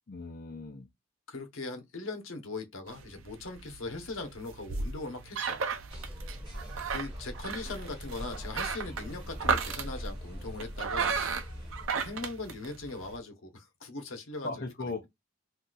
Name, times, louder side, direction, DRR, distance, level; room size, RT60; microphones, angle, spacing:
voice 1, 0.1-0.9 14.4-15.1, left 3 dB, 45° left, 0.6 m, -38 dB
voice 2, 1.3-5.6 6.9-11.2 12.0-14.5, left 3 dB, 80° left, 0.9 m, -40 dB
sound 1, 2.9-13.2, right 5 dB, 80° right, 0.5 m, -35 dB
sound 2, 5.9-11.9, equal, 25° right, 1.2 m, -41 dB
2.7 x 2.3 x 3.9 m
head